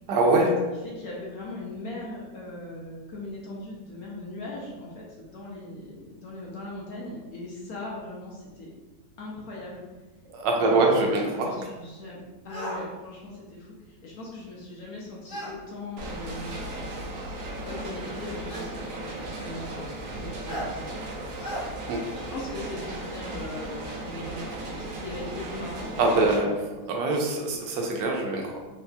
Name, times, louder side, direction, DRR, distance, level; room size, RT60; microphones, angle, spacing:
voice 1, 0.1-0.5 10.3-11.5 21.9-22.0 26.0-26.5 26.9-28.6, right 2 dB, 80° right, 1 dB, 1.3 m, -23 dB
voice 2, 0.8-8.7 9.2-9.8 10.6-16.6 17.4-19.9 20.1-20.8 22.1-26.0 26.4-26.5, left 2 dB, 65° left, -4 dB, 1.0 m, -39 dB
sound 1, 12.5-12.8 15.3-15.6 16.8-16.9 18.5-18.8 20.5-20.7 21.4-21.7, right 1 dB, 85° left, 0.4 m, -35 dB
sound 2, 16.0-26.4, right 2 dB, 65° right, 0.8 m, -36 dB
4.0 x 2.8 x 2.2 m, 1.2 s
omnidirectional pair, 1.9 m